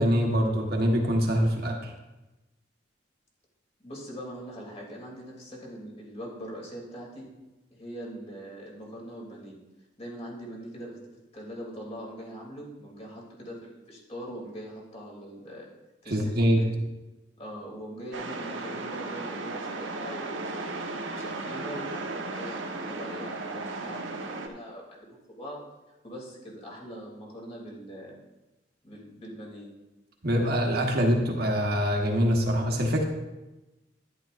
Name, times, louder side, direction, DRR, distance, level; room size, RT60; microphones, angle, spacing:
voice 1, 0.0-1.9 16.1-16.6 30.2-33.0, equal, 55° right, 1 dB, 1.3 m, -24 dB
voice 2, 3.8-7.3 7.7-9.6 10.0-11.0 11.3-15.7 16.0-16.7 17.4-25.6 26.0-28.2 28.8-29.7, equal, 35° left, -3 dB, 3.0 m, -42 dB
sound 1, 18.1-24.5, right 3 dB, 85° right, 1.1 m, -35 dB
11.0 x 10.5 x 2.6 m, 1.0 s
head